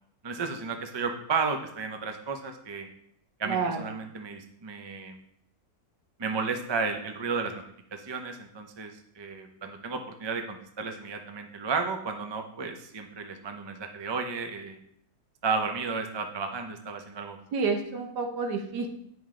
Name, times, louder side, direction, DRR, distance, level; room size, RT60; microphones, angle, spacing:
voice 1, 0.2-2.9 3.4-5.2 6.2-7.6 7.9-14.8 15.4-17.4, right 4 dB, 45° right, 5 dB, 0.3 m, -33 dB
voice 2, 3.4-3.8 17.5-18.9, right 4 dB, 80° right, 4 dB, 1.6 m, -29 dB
9.2 x 5.4 x 3.8 m, 0.71 s
omnidirectional pair, 1.8 m